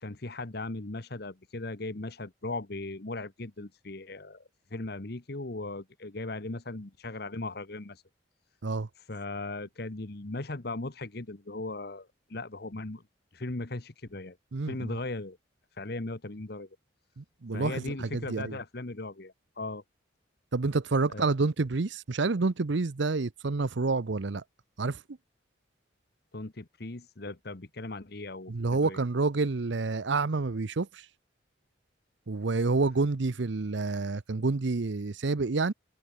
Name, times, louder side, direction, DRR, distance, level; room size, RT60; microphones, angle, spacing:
voice 1, 0.0-8.0 9.0-13.0 13.3-14.4 14.6-15.4 15.7-16.7 17.5-19.8 21.1-21.3 26.3-28.5 28.8-29.0, left 2 dB, 55° left, 1.2 m, -38 dB
voice 2, 14.5-14.9 17.2-18.6 20.5-24.4 24.8-25.0 28.5-31.1 32.3-35.7, right 3 dB, 70° right, 0.7 m, -28 dB
head